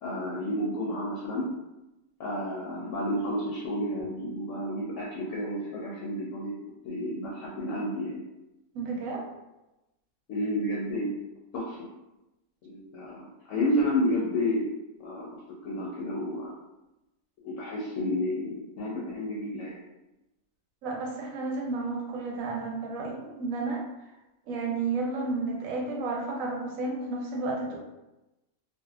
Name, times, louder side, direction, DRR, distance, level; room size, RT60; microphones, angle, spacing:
voice 1, 0.0-1.5 2.2-6.6 6.8-8.2 10.3-11.2 11.5-11.8 12.6-14.7 15.0-15.3 15.6-16.5 17.4-19.8, left 1 dB, 70° left, -4 dB, 0.9 m, -31 dB
voice 2, 8.7-9.2 20.8-23.8 24.5-27.8, right 3 dB, 75° right, 0 dB, 1.0 m, -32 dB
2.6 x 2.2 x 2.2 m, 0.96 s
omnidirectional pair, 1.5 m